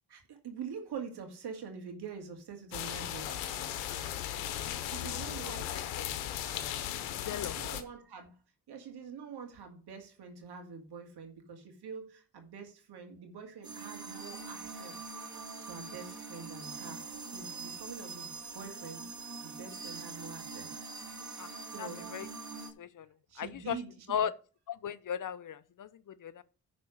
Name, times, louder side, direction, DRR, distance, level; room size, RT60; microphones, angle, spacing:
voice 1, 0.1-3.3 4.8-6.2 7.2-8.4 8.7-15.0 15.6-19.1 19.4-20.7 21.6-22.1 23.3-24.2, right 6 dB, 65° right, 2.3 m, -45 dB
sound 1, 2.7-7.8, left 11 dB, 85° left, 0.9 m, -37 dB
voice 2, 4.6-5.5 6.0-6.1 6.9-7.6 21.4-21.5 21.8-22.3 22.8-23.1 23.4-23.8 24.1-24.3 24.7-26.4, left 9 dB, 50° left, 0.7 m, -38 dB
sound 2, 13.6-22.7, right 4 dB, 45° right, 2.4 m, -44 dB
10.5 x 4.2 x 6.6 m
hypercardioid pair, 40°, 42 cm